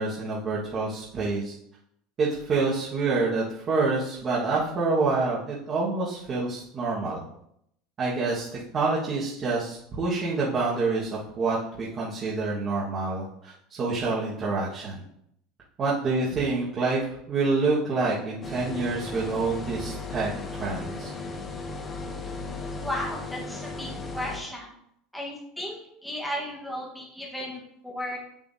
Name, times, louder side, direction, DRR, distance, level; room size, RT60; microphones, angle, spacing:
voice 1, 0.0-1.5 2.2-7.2 8.0-8.5 8.7-11.1 11.4-15.0 15.8-21.1, right 3 dB, 25° right, -7 dB, 1.5 m, -27 dB
sound 1, 18.4-24.4, left 3 dB, 20° left, 0.9 m, -36 dB
voice 2, 22.8-24.7 25.1-28.2, left 1 dB, ahead, -4 dB, 1.3 m, -35 dB
8.1 x 7.3 x 2.8 m, 0.74 s
cardioid pair, 160°, 0 cm